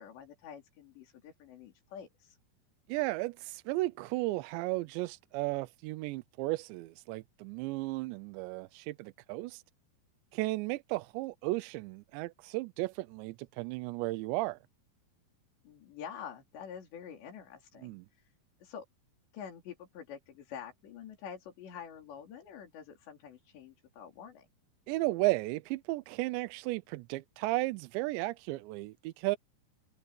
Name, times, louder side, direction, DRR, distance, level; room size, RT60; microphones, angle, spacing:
voice 1, 0.0-2.4 15.6-18.3 18.6-18.9 19.3-24.5, left 8 dB, 75° left, 5.8 m, -47 dB
voice 2, 2.9-9.6 10.3-14.6 17.8-18.1 24.9-29.4, right 20 dB, 85° right, 2.9 m, -34 dB
omnidirectional pair, 5.1 m